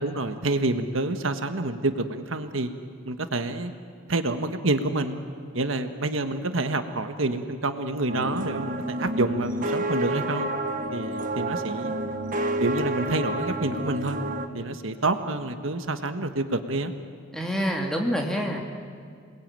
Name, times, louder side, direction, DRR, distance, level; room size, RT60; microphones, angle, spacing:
voice 1, 0.0-2.7 3.0-3.7 4.1-5.2 5.5-10.5 10.9-11.9 12.6-14.2 14.5-16.9, right 2 dB, 70° right, 8 dB, 1.5 m, -28 dB
sound 1, 8.1-14.5, right 1 dB, 40° right, 1.4 m, -29 dB
voice 2, 17.3-18.6, equal, 5° left, 0 dB, 2.6 m, -26 dB
28.0 x 21.0 x 9.0 m, 2.3 s
head